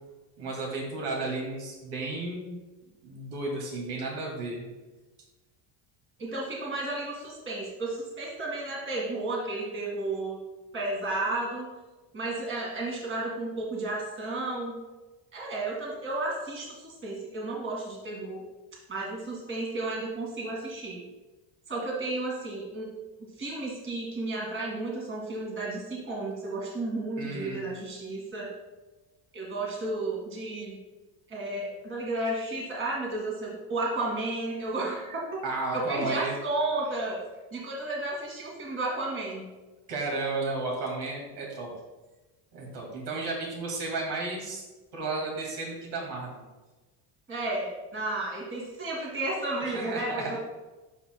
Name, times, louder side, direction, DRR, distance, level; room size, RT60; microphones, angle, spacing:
voice 1, 0.4-2.6 3.0-4.7 27.2-27.7 35.4-36.3 39.9-41.7 42.5-44.7 44.9-46.5 49.6-50.4, right 3 dB, 60° right, -1 dB, 2.2 m, -33 dB
voice 2, 6.2-10.4 10.7-11.7 12.1-14.8 15.3-18.4 18.9-21.0 21.7-22.9 23.4-28.5 29.3-30.8 31.3-35.4 35.7-37.2 37.5-39.5 47.3-50.4, right 2 dB, 25° right, -3 dB, 1.9 m, -33 dB
12.0 x 5.0 x 2.2 m, 1.2 s
cardioid pair, 130°, 46 cm